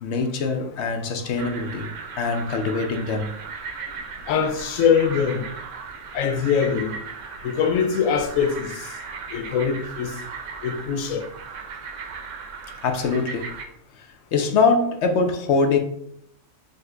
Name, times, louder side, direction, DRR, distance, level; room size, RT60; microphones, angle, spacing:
voice 1, 0.0-1.9 2.2-3.3 12.8-13.5 14.0-15.8, left 4 dB, 65° left, 0.8 m, -23 dB
sound 1, 1.4-13.6, right 5 dB, 75° right, 1.0 m, -37 dB
voice 2, 4.3-5.4 6.1-7.0 7.4-8.7 9.3-10.2 10.6-11.3, left 7 dB, 90° left, 1.0 m, -22 dB
5.2 x 2.1 x 3.7 m
omnidirectional pair, 1.4 m